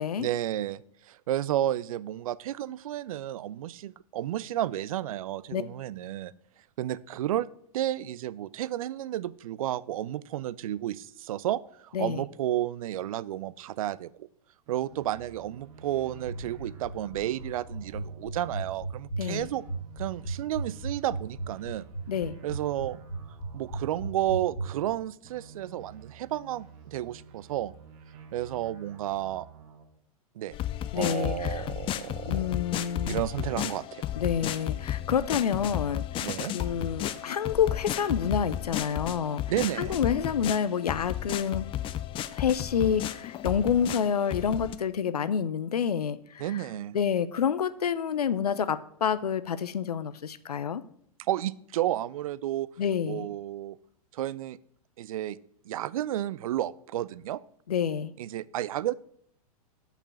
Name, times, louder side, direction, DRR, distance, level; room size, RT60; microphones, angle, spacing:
voice 1, 0.2-6.3 6.8-7.5 7.7-14.3 14.7-19.6 20.0-21.8 22.4-23.0 23.5-27.7 28.3-29.5 30.4-30.5 30.9-32.6 33.1-34.1 36.2-36.5 39.5-40.0 46.4-47.0 51.2-52.7 53.1-53.8 54.1-54.6 55.0-55.4 55.7-57.4 58.2-58.9, right 13 dB, 65° right, 19 dB, 0.5 m, -32 dB
sound 1, 14.6-19.0 19.2-24.9 25.2-29.9, right 6 dB, 45° right, 1.9 m, -50 dB
sound 2, 16.2-24.7, right 2 dB, 55° left, 2.0 m, -34 dB
voice 2, 19.2-19.5 22.1-22.4 30.9-31.7 32.3-33.2 34.2-36.1 36.5-39.4 39.8-41.6 42.3-46.7 46.9-50.8 52.8-53.3 57.7-58.1, left 7 dB, 85° left, 14 dB, 0.5 m, -28 dB
sound 3, 30.5-44.7, left 12 dB, 25° left, 0.5 m, -33 dB
6.7 x 5.7 x 7.0 m, 0.66 s
hypercardioid pair, 105°, 19 cm